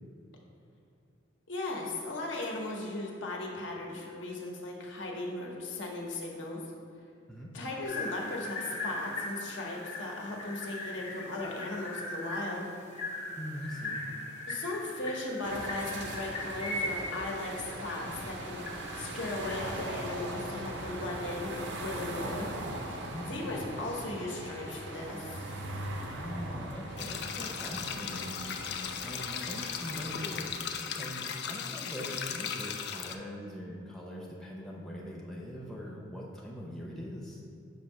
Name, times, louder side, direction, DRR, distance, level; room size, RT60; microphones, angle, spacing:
voice 1, 1.5-6.6 7.5-12.7 14.5-18.6 19.0-22.5 22.8-22.9 23.3-25.4, left 2 dB, 75° left, -1 dB, 0.9 m, -37 dB
sound 1, 7.9-20.1, left 1 dB, 35° left, 0.8 m, -40 dB
voice 2, 13.4-14.0 23.1-23.6 26.1-30.6 30.9-37.4, equal, 5° left, -4 dB, 0.5 m, -42 dB
sound 2, 15.4-30.5, right 1 dB, 65° right, 0.6 m, -40 dB
sound 3, 27.0-33.2, left 7 dB, 55° left, 0.3 m, -37 dB
6.3 x 2.7 x 5.5 m, 2.3 s
head